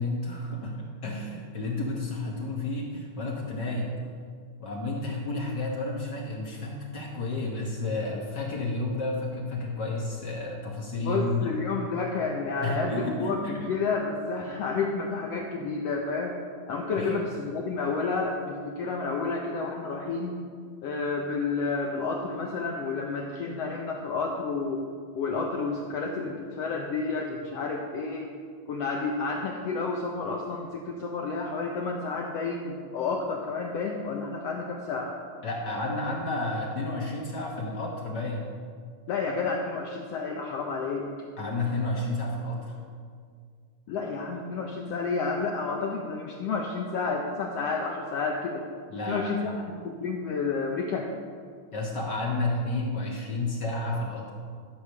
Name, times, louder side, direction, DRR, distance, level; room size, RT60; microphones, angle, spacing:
voice 1, 0.0-3.9 4.6-11.5 12.6-13.5 17.0-17.3 35.4-38.5 41.4-42.8 48.9-49.5 51.7-54.3, left 2 dB, 60° left, -2 dB, 1.1 m, -31 dB
voice 2, 11.0-16.4 16.7-20.4 20.8-24.8 25.1-28.3 28.7-35.2 39.1-41.1 43.9-48.7 49.1-51.1, left 4 dB, 80° left, 1 dB, 1.4 m, -30 dB
14.0 x 4.9 x 6.7 m, 2.1 s
omnidirectional pair, 3.7 m